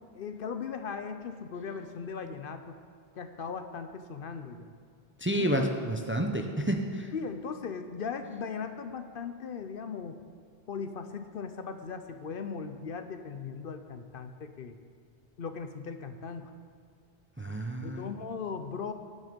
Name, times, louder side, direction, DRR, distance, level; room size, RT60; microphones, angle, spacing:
voice 1, 0.1-2.7 3.1-4.7 5.3-5.6 7.1-10.2 10.7-14.8 15.4-16.5 17.8-18.9, left 5 dB, 65° left, 8 dB, 0.9 m, -38 dB
voice 2, 5.2-7.1 17.4-18.1, right 1 dB, 15° right, 4 dB, 0.6 m, -30 dB
18.5 x 6.6 x 5.2 m, 2.2 s
omnidirectional pair, 1.0 m